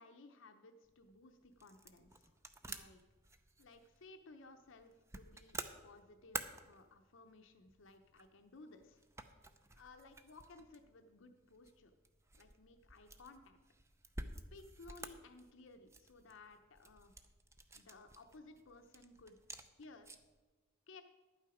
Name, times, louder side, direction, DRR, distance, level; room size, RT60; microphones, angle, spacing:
voice 1, 0.0-2.3 2.7-3.0 3.6-9.0 9.8-11.9 12.3-13.6 14.5-17.1 17.7-19.4 19.7-20.1 20.9-21.0, left 3 dB, 65° left, 6 dB, 0.7 m, -58 dB
sound 1, 0.8-20.4, right 2 dB, 15° right, 0.5 m, -52 dB
11.5 x 8.9 x 4.9 m, 1.3 s
head